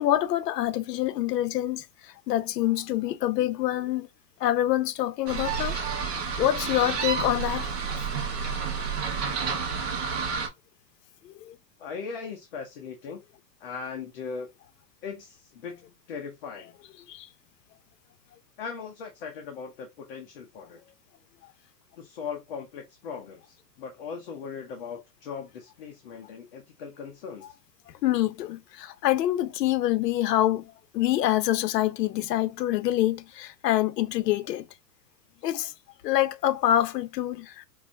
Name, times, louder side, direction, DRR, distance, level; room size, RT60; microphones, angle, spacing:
voice 1, 0.0-4.1 4.4-5.8 6.4-7.7 11.2-11.5 17.1-17.3 28.0-34.7 35.4-35.7 36.0-37.6, left 13 dB, 75° left, 0.7 m, -26 dB
sound 1, 5.3-10.5, right 5 dB, 40° right, 1.0 m, -30 dB
voice 2, 11.8-13.2 13.6-14.5 15.0-16.8 18.6-20.8 22.0-27.5, left 5 dB, 35° left, 0.6 m, -39 dB
4.8 x 2.6 x 2.6 m
supercardioid pair, 170°, 49 cm